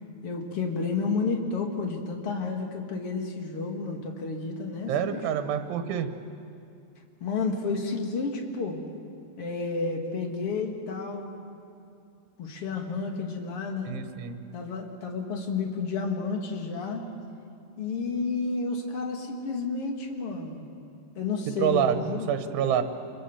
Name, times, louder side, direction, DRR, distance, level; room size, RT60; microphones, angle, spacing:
voice 1, 0.2-5.2 7.2-8.8 9.4-11.4 12.4-14.0 14.5-17.1 17.8-20.6 21.2-22.3, left 4 dB, 45° left, 2 dB, 2.0 m, -31 dB
voice 2, 4.9-6.1 13.9-14.4 21.6-22.8, right 9 dB, 85° right, 8 dB, 3.6 m, -27 dB
27.5 x 23.5 x 7.1 m, 2.5 s
omnidirectional pair, 5.3 m